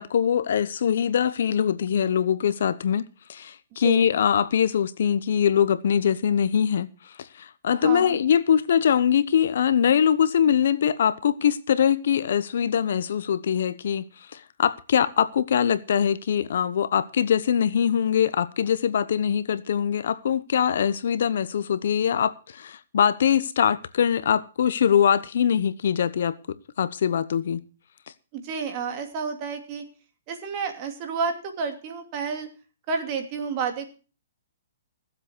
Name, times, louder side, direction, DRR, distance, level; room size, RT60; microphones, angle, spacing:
voice 1, 0.0-6.9 7.2-26.3 26.8-27.6, left 8 dB, 65° left, 1.0 m, -23 dB
voice 2, 7.8-8.2 28.3-29.8 30.3-32.5 32.9-33.9, right 5 dB, 30° right, 2.8 m, -30 dB
17.0 x 7.8 x 6.2 m
hypercardioid pair, 155°, 0 cm